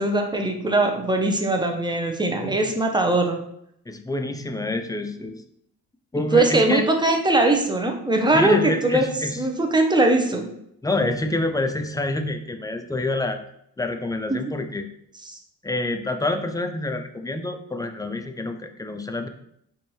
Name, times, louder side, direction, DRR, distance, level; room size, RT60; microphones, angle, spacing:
voice 1, 0.0-3.4 6.1-9.1 9.4-10.5 14.3-14.4 15.3-15.4, right 2 dB, 10° right, 3 dB, 0.7 m, -21 dB
voice 2, 3.9-5.4 6.1-6.8 8.3-9.4 10.8-13.4 13.8-14.8 15.6-19.3, left 2 dB, 10° left, 6 dB, 0.4 m, -27 dB
4.2 x 2.7 x 3.1 m, 0.73 s
supercardioid pair, 65°, 39 cm